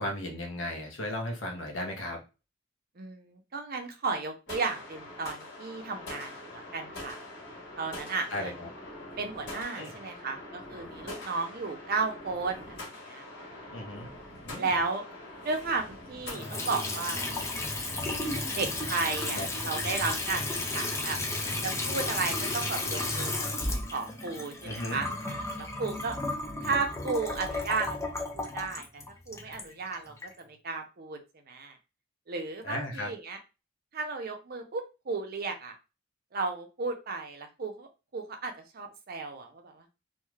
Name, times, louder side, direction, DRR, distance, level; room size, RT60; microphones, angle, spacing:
voice 1, 0.0-2.2 8.3-8.7 9.7-9.9 13.7-14.1 14.5-14.8 19.3-19.5 24.6-25.0 32.6-33.1, left 1 dB, 75° left, 1 dB, 0.9 m, -35 dB
voice 2, 3.0-7.2 7.8-8.5 9.2-13.3 14.6-15.0 15.4-17.3 18.6-20.4 20.7-21.2 21.6-23.5 23.9-26.2 26.6-31.2 31.5-31.8 32.3-33.4 33.9-35.7 36.3-39.8, right 4 dB, 50° right, 5 dB, 0.5 m, -34 dB
sound 1, 4.5-23.3, left 1 dB, 60° left, 1.3 m, -45 dB
Water tap faucet / Sink (filling or washing) / Trickle dribble, 16.2-30.3, left 2 dB, 15° left, 0.5 m, -33 dB
2.5 x 2.3 x 3.1 m, 0.29 s
head